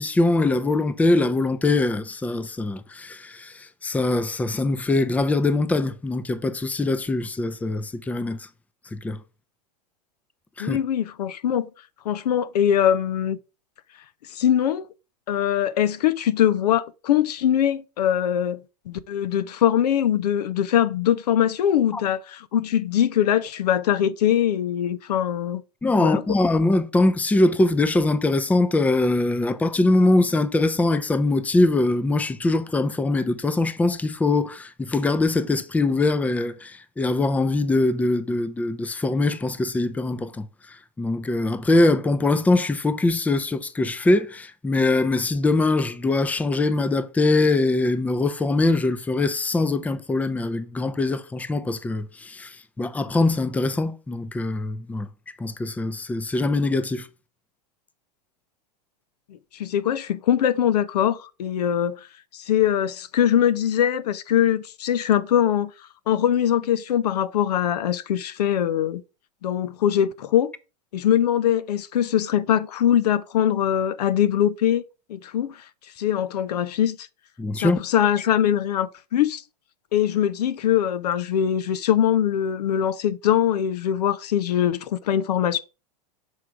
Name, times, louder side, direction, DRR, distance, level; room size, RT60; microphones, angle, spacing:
voice 1, 0.0-8.4 8.9-9.2 10.6-10.8 21.9-22.0 25.8-40.5 41.0-55.1 55.4-57.1 77.4-77.8, left 2 dB, 5° left, 0.5 m, -22 dB
voice 2, 10.6-11.7 12.0-13.4 14.3-14.9 15.3-18.6 18.9-25.6 26.0-26.2 59.6-62.0 62.3-65.7 66.1-69.0 69.4-70.5 70.9-74.8 75.1-75.6 76.0-77.1 77.5-79.4 79.9-85.6, left 10 dB, 80° left, 0.6 m, -22 dB
6.3 x 3.7 x 4.6 m
hypercardioid pair, 110°, 20 cm